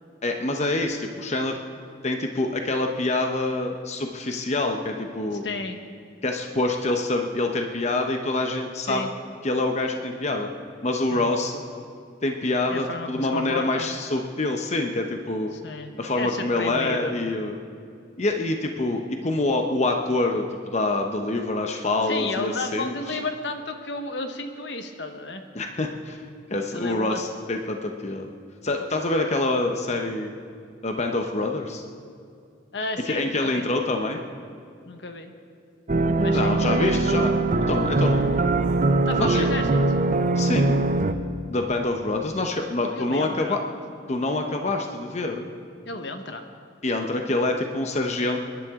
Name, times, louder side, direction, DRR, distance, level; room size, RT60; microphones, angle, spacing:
voice 1, 0.2-1.6 2.0-5.5 6.2-9.1 9.4-10.5 10.8-11.6 12.2-15.5 16.0-17.5 18.2-23.2 25.5-28.3 28.6-30.3 30.8-31.8 33.1-34.2 36.3-38.4 39.1-39.5 40.4-40.9 41.5-43.6 44.1-45.5 46.8-48.4, left 2 dB, 40° left, 4 dB, 0.9 m, -26 dB
voice 2, 5.4-5.8 8.9-9.1 11.1-11.3 12.7-13.9 15.5-17.1 22.1-25.4 26.7-27.2 32.7-33.6 34.8-35.3 36.2-37.0 38.2-38.3 39.1-39.7 42.8-43.6 45.8-46.4, left 2 dB, 75° left, 6 dB, 1.2 m, -33 dB
sound 1, 35.9-41.1, right 2 dB, 45° right, 0.7 m, -22 dB
28.5 x 11.0 x 3.7 m, 2.3 s
head